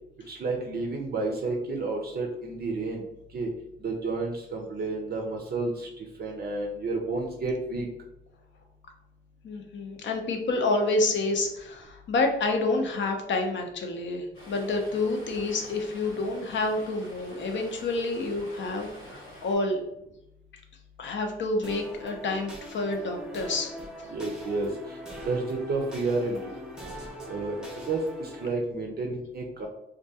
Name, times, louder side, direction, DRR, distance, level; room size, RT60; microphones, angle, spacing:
voice 1, 0.3-3.0 3.3-3.5 3.8-7.9 24.1-25.0 25.3-26.5 27.3-29.7, right 3 dB, 50° right, 0 dB, 0.4 m, -31 dB
voice 2, 9.4-19.8 21.0-23.7, left 2 dB, 65° left, 3 dB, 0.5 m, -28 dB
Stream, 14.3-19.6, equal, 90° left, 1.1 m, -47 dB
sound 1, 21.6-28.5, equal, 5° right, 0.6 m, -41 dB
2.3 x 2.2 x 2.7 m, 0.86 s
cardioid pair, 90°, 21 cm